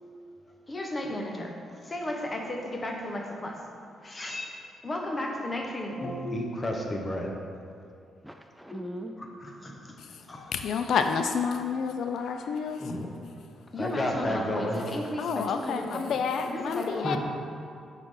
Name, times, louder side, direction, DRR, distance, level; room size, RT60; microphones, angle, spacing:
voice 1, 0.7-1.5 1.9-3.5 4.2-4.5 4.8-7.3 8.7-9.0 12.8-13.0 13.7-15.8 16.5-17.2, left 1 dB, 25° left, 1 dB, 0.9 m, -32 dB
voice 2, 8.2-9.4 10.0-10.1, equal, 5° right, 4 dB, 0.4 m, -41 dB
voice 3, 10.0-12.9 15.2-17.2, left 6 dB, 70° left, 7 dB, 0.3 m, -29 dB
8.0 x 5.8 x 3.8 m, 2.4 s
cardioid pair, 110°, 0 cm